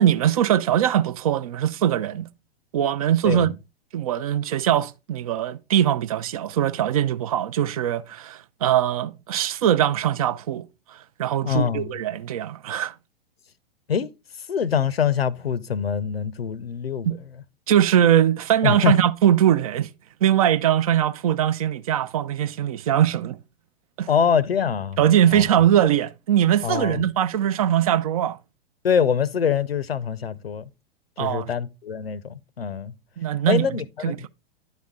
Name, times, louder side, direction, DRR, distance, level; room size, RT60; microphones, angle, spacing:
voice 1, 0.0-2.3 2.7-3.5 3.9-10.6 11.2-12.9 17.1-17.2 17.7-19.9 20.2-23.4 24.0-24.1 25.0-28.4 31.2-31.5 33.2-33.6 34.0-34.3, right 10 dB, 40° right, 0.4 m, -21 dB
voice 2, 3.2-3.6 11.4-11.9 13.9-14.1 14.5-17.2 18.6-19.0 24.1-25.0 25.3-25.4 26.6-27.0 28.8-30.7 31.2-32.9 33.5-34.3, left 7 dB, 75° left, 0.6 m, -24 dB
10.5 x 4.1 x 3.6 m
figure-of-eight pair, 100°, 30 cm